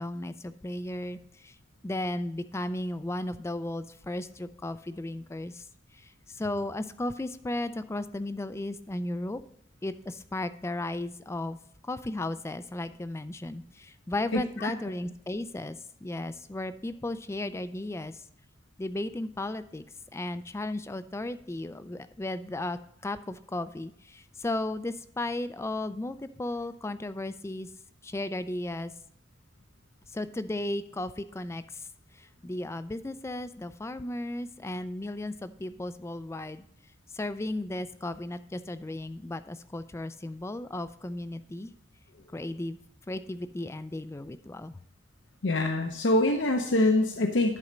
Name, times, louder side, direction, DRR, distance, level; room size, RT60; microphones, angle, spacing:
voice 1, 0.0-1.6 1.8-5.7 5.9-9.4 9.8-11.6 11.8-18.2 18.8-19.8 20.1-27.7 28.0-28.9 30.1-31.9 32.1-36.7 37.1-41.7 42.3-42.8 43.1-44.8, left 1 dB, 15° left, 12 dB, 0.3 m, -35 dB
voice 2, 14.3-14.7 45.4-47.6, left 2 dB, 65° left, 3 dB, 0.7 m, -25 dB
10.5 x 4.2 x 5.0 m, 0.71 s
head